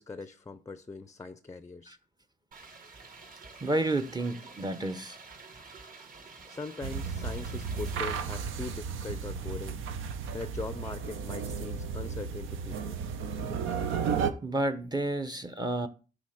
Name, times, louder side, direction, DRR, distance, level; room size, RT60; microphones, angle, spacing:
voice 1, 0.0-2.0 6.5-9.8 10.3-13.0 13.5-13.6, left 3 dB, 15° left, 0.5 m, -41 dB
sound 1, 2.5-8.2, right 3 dB, 45° right, 1.6 m, -48 dB
voice 2, 3.6-5.2 14.4-15.9, right 2 dB, 20° right, 0.7 m, -30 dB
sound 2, 6.8-14.3, right 6 dB, 80° right, 0.9 m, -34 dB
9.9 x 3.4 x 6.5 m
cardioid pair, 90°, 20 cm